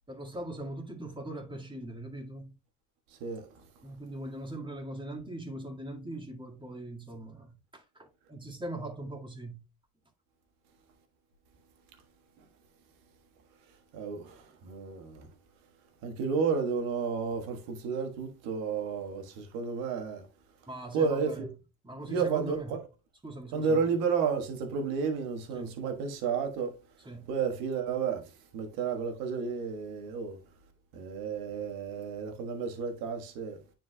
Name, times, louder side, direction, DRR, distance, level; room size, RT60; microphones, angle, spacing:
voice 1, 0.1-2.6 3.8-9.6 20.7-21.5 21.8-22.7 23.2-23.9 25.5-25.8 27.1-27.3, right 1 dB, 15° right, 1.8 m, -41 dB
voice 2, 13.9-15.3 16.0-20.2 20.9-21.5 22.1-22.8 23.5-26.7 27.3-28.2 28.5-30.4 30.9-33.6, right 5 dB, 75° right, 1.4 m, -31 dB
9.5 x 4.5 x 2.2 m
hypercardioid pair, 65°, 35 cm